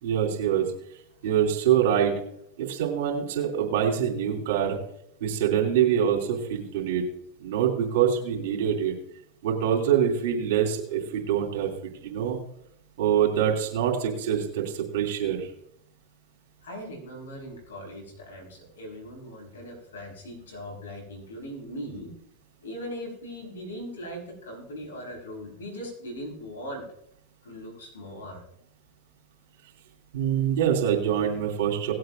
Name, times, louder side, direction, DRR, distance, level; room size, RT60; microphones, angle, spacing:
voice 1, 0.0-0.6 1.2-2.2 2.6-4.8 5.2-7.0 7.4-8.9 9.4-11.7 12.0-12.4 13.0-15.5 30.1-31.9, right 9 dB, 70° right, -1 dB, 2.7 m, -25 dB
voice 2, 16.6-22.1 22.6-26.8 27.4-28.4, equal, 85° left, 1 dB, 4.8 m, -39 dB
19.0 x 7.8 x 2.6 m, 0.72 s
hypercardioid pair, 100°, 0 cm